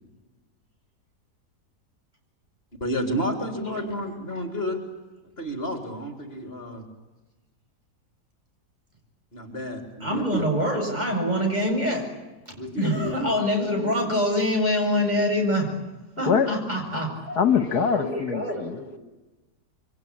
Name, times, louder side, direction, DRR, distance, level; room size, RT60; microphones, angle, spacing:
voice 1, 2.8-4.8 5.4-6.8 9.3-10.5 12.6-13.3, equal, 35° left, 4 dB, 4.0 m, -30 dB
voice 2, 10.0-12.1 12.8-15.7 16.2-17.1 17.9-19.0, left 1 dB, 25° right, 1 dB, 7.9 m, -25 dB
voice 3, 17.3-19.0, left 7 dB, 75° left, 9 dB, 2.0 m, -24 dB
28.0 x 24.5 x 8.8 m, 1.1 s
omnidirectional pair, 1.7 m